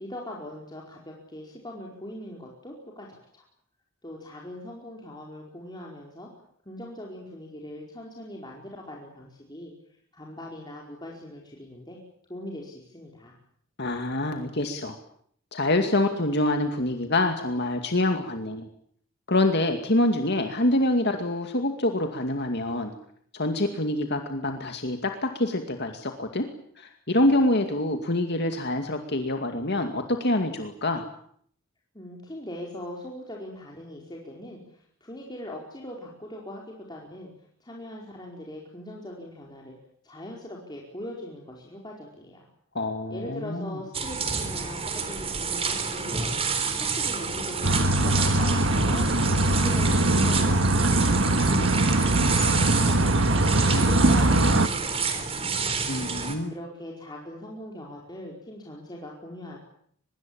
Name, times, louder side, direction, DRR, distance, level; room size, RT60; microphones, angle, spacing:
voice 1, 0.0-3.4 4.0-6.3 6.6-9.7 10.1-12.0 12.3-13.3 31.9-37.3 37.6-39.7 40.0-42.5 43.1-46.4 46.8-49.1 49.5-50.9 51.2-52.5 52.9-55.7 56.5-59.6, left 1 dB, 20° left, -2 dB, 4.7 m, -41 dB
voice 2, 13.8-15.0 15.5-18.7 19.3-22.9 23.3-26.5 26.8-31.1 42.7-43.8 55.9-56.5, left 1 dB, 55° left, 5 dB, 2.3 m, -26 dB
sound 1, 43.9-56.4, right 5 dB, 30° right, 4.0 m, -29 dB
sound 2, 47.6-54.7, right 1 dB, 65° right, 1.7 m, -22 dB
24.0 x 22.5 x 8.8 m, 0.65 s
head